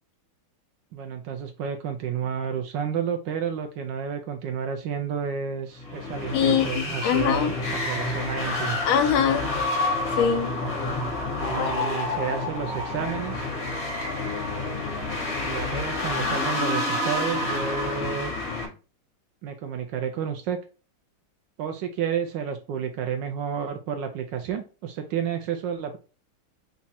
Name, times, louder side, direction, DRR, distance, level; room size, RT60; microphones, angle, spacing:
voice 1, 0.9-8.8 11.4-13.5 15.4-18.3 19.4-20.6 21.6-26.0, right 7 dB, 75° right, 1.1 m, -31 dB
sound 1, 5.8-18.7, left 2 dB, 45° left, 1.7 m, -28 dB
voice 2, 6.3-7.5 8.8-9.5 10.2-10.5 11.6-11.9, left 8 dB, 80° left, 1.5 m, -23 dB
4.1 x 2.4 x 4.1 m
omnidirectional pair, 2.3 m